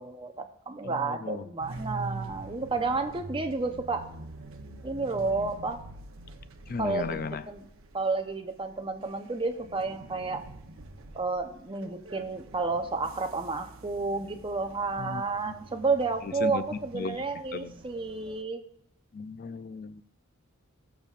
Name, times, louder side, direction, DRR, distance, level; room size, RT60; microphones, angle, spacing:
voice 1, 0.0-4.1 4.8-5.8 6.8-7.6 7.9-10.4 11.1-18.6, right 3 dB, 25° right, 6 dB, 0.8 m, -31 dB
voice 2, 0.8-1.4 6.7-7.4 15.0-15.5 16.2-17.2 17.5-17.7 19.1-20.0, left 5 dB, 45° left, 13 dB, 0.4 m, -36 dB
sound 1, 1.6-18.4, right 2 dB, 70° right, 0.9 m, -45 dB
20.0 x 7.1 x 2.5 m, 0.74 s
head